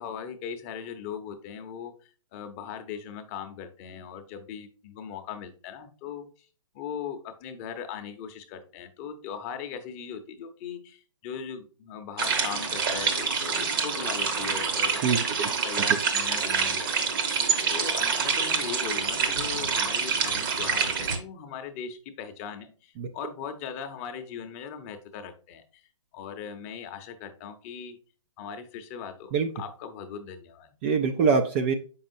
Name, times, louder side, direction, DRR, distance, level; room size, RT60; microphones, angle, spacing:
voice 1, 0.0-6.5 6.7-15.0 15.4-17.2 17.7-28.0 28.4-30.7, left 7 dB, 25° left, 7 dB, 0.8 m, -39 dB
sound 1, 12.2-21.2, right 5 dB, 45° right, 1.1 m, -27 dB
voice 2, 15.0-15.5 15.9-16.0 23.0-23.1 29.3-29.5 30.8-31.7, right 5 dB, 25° right, 6 dB, 0.4 m, -24 dB
7.1 x 5.5 x 2.6 m, 0.38 s
hypercardioid pair, 145°, 16 cm